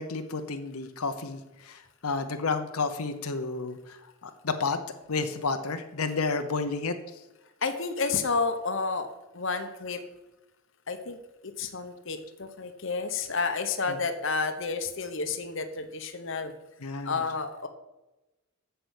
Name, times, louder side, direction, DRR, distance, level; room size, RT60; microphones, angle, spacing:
voice 1, 0.0-1.4 2.0-3.8 4.4-4.8 5.1-6.9 16.8-17.2, left 4 dB, 85° left, 8 dB, 0.9 m, -30 dB
voice 2, 7.6-9.1 9.3-10.0 10.9-11.2 11.6-16.5 17.0-17.7, left 4 dB, 60° left, 8 dB, 0.9 m, -30 dB
7.9 x 6.8 x 8.2 m, 1.0 s
head